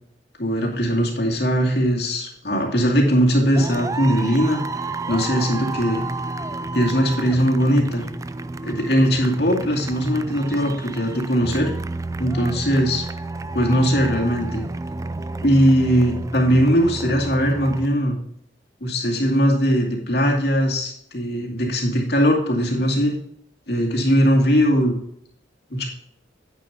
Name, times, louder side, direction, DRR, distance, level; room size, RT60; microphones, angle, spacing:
voice 1, 0.4-4.6 5.1-6.0 6.7-8.1 8.6-11.7 12.2-13.0 13.5-14.6 15.4-18.2 18.8-23.2 23.7-24.9 25.7-25.9, equal, 60° left, 0 dB, 2.4 m, -20 dB
sound 1, 3.6-17.9, right 3 dB, 20° right, 0.3 m, -31 dB
9.6 x 8.8 x 2.9 m, 0.70 s
head